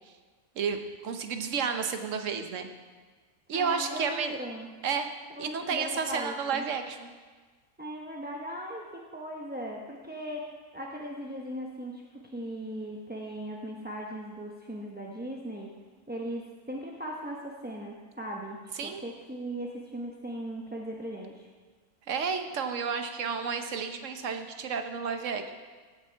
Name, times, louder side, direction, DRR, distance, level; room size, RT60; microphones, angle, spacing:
voice 1, 0.6-2.7 3.5-4.3 4.8-5.1 5.4-7.1 18.8-19.0 22.1-25.5, right 6 dB, 60° right, 7 dB, 1.2 m, -31 dB
voice 2, 3.5-4.7 5.3-6.6 7.8-15.7 16.1-21.5, equal, 10° right, -2 dB, 0.6 m, -38 dB
16.5 x 8.1 x 4.6 m, 1.4 s
omnidirectional pair, 1.6 m